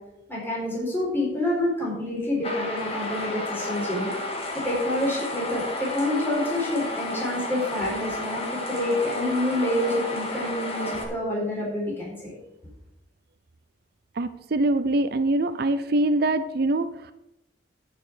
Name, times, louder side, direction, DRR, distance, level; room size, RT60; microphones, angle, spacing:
voice 1, 0.3-4.1 4.5-12.3, left 1 dB, 10° left, -5 dB, 4.3 m, -27 dB
sound 1, 2.4-11.0, left 2 dB, 30° left, 2.0 m, -32 dB
voice 2, 14.2-17.1, right 2 dB, 55° right, 11 dB, 0.6 m, -24 dB
9.7 x 7.0 x 6.3 m, 0.84 s
head